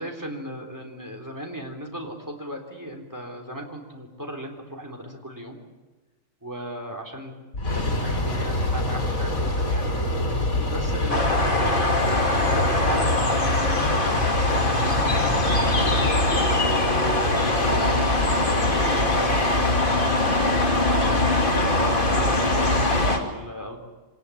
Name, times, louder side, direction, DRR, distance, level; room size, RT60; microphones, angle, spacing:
voice 1, 0.0-5.6 6.4-7.3 7.7-9.9 10.7-16.6 17.4-20.0 20.9-23.8, equal, 15° right, 2 dB, 3.8 m, -36 dB
sound 1, 7.5-23.1, left 1 dB, 80° left, 3.5 m, -25 dB
sound 2, 11.1-23.2, left 2 dB, 40° left, 2.8 m, -23 dB
25.0 x 19.0 x 10.0 m, 1.2 s
omnidirectional pair, 1.4 m